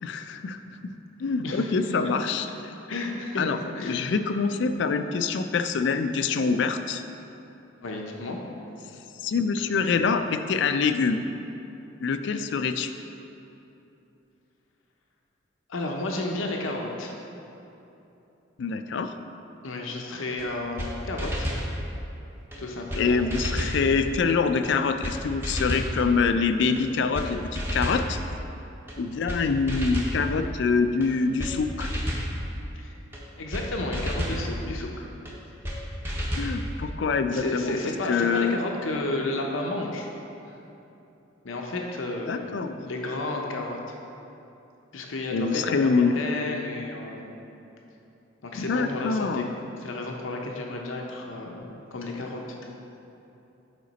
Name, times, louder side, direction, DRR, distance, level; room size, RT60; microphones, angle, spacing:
voice 1, 0.0-2.7 3.4-7.0 9.2-11.2 12.0-12.9 18.6-19.2 23.0-28.2 29.0-31.9 36.3-37.8 38.1-38.6 42.3-42.8 45.3-46.2 48.5-49.5, left 5 dB, 65° left, 9 dB, 0.3 m, -25 dB
voice 2, 2.9-3.5 3.8-4.1 7.8-8.4 9.6-9.7 15.7-17.1 19.6-21.5 22.6-23.2 32.7-32.9 33.4-35.0 37.3-40.1 40.5-40.6 41.4-42.5 42.9-43.8 44.9-47.2 48.4-49.5 49.8-52.6, left 2 dB, 90° left, 1 dB, 0.7 m, -32 dB
sound 1, 20.4-20.5 20.8-20.9 21.2-21.7 22.5-22.6 22.9-23.0 23.3-23.8 24.6-24.7 25.0-25.2 25.4-25.9 26.8-26.9 27.1-27.3 27.6-28.0 28.9-29.0 29.3-29.4 29.7-30.2 31.0-31.1 31.4-31.5 31.8-32.3 33.1-33.2 33.5-33.7 33.9-34.4 35.3-35.4 35.6-35.8 36.0-36.5, equal, 10° right, 0.7 m, -30 dB
7.5 x 5.1 x 4.0 m, 2.9 s
head